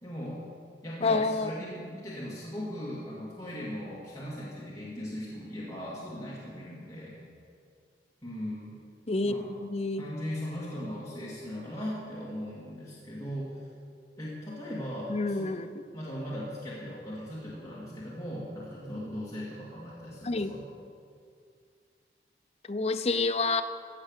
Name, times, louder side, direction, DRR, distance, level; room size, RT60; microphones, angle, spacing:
voice 1, 0.0-0.4 0.8-7.2 8.2-8.8 9.2-9.5 10.0-13.5 14.2-15.5 15.9-20.6, equal, 20° left, -7 dB, 2.1 m, -38 dB
voice 2, 1.0-1.6 9.1-10.0 15.1-15.7 20.2-20.5 22.7-23.6, left 3 dB, 35° left, 9 dB, 0.5 m, -28 dB
15.5 x 8.0 x 6.5 m, 2.2 s
head